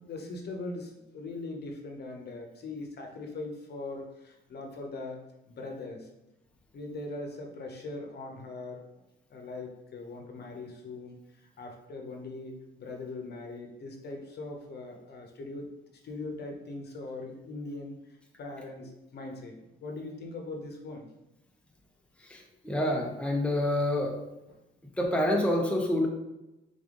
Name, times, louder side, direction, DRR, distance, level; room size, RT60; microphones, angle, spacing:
voice 1, 0.0-6.1 6.7-8.8 9.3-15.8 16.0-21.1, left 2 dB, 55° left, 2 dB, 0.9 m, -41 dB
voice 2, 22.2-24.2 25.0-26.1, left 1 dB, 5° left, 0 dB, 0.9 m, -27 dB
3.8 x 3.5 x 3.8 m, 0.94 s
cardioid pair, 90°, 20 cm